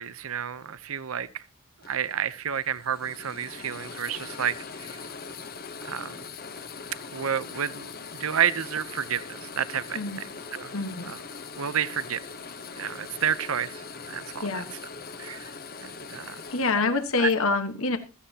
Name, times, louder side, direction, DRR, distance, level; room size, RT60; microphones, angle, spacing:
voice 1, 0.0-1.4 1.9-4.6 5.8-6.2 7.1-7.9 8.2-10.0 10.5-10.7 11.0-11.2 11.6-12.2 12.7-13.8 14.1-14.6 15.2-15.5 15.8-16.4 17.2-17.3, right 8 dB, 70° right, 0.7 m, -30 dB
sound 1, 1.8-17.3, left 5 dB, 45° left, 1.0 m, -41 dB
voice 2, 10.7-11.1 14.4-14.6 16.5-18.0, left 3 dB, 70° left, 1.3 m, -26 dB
15.5 x 14.5 x 2.8 m
head